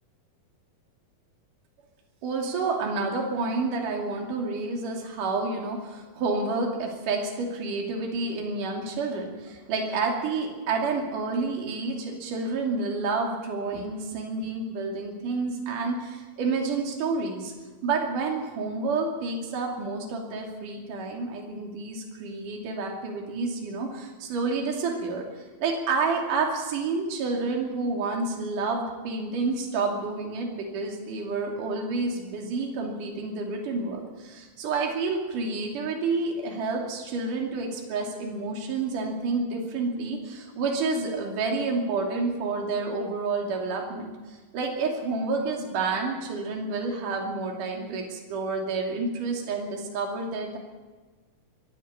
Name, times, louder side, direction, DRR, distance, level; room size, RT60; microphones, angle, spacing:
voice 1, 2.2-17.5 17.8-50.6, right 3 dB, 60° right, 1 dB, 4.2 m, -29 dB
23.5 x 13.0 x 8.8 m, 1.3 s
omnidirectional pair, 4.3 m